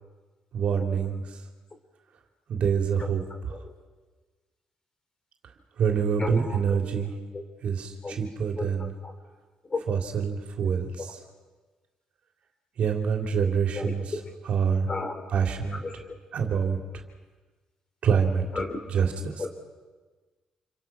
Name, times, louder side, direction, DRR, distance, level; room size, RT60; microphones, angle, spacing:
voice 1, 0.5-1.2 2.5-3.2 5.8-7.1 7.6-8.9 9.9-11.2 12.8-14.1 14.4-14.9 15.3-15.8 16.3-16.8 18.0-18.4 18.9-19.1 19.3-19.4, right 6 dB, 65° right, 4 dB, 3.2 m, -26 dB
voice 2, 3.0-3.7 6.2-7.0 7.3-7.4 8.0-8.2 8.6-9.1 9.7-9.8 11.0-11.1 13.7-14.2 14.9-15.3 15.8-16.2 18.5-18.8 19.4-19.5, left 3 dB, 35° left, 5 dB, 4.5 m, -34 dB
28.0 x 23.0 x 6.0 m, 1.3 s
cardioid pair, 75°, 2 cm